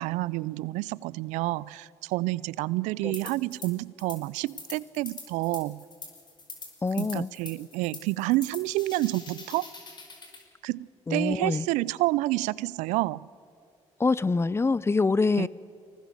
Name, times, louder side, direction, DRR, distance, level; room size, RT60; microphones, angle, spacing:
voice 1, 0.0-5.8 7.0-9.6 10.6-13.2 15.4-15.5, right 19 dB, 80° right, 22 dB, 0.4 m, -29 dB
sound 1, 3.1-3.7 4.0-10.4, left 3 dB, 40° left, 4.8 m, -44 dB
voice 2, 6.8-7.3 11.1-11.7 14.0-15.5, left 4 dB, 20° left, 20 dB, 0.6 m, -25 dB
24.5 x 19.0 x 6.5 m, 2.5 s
supercardioid pair, 60°, 12 cm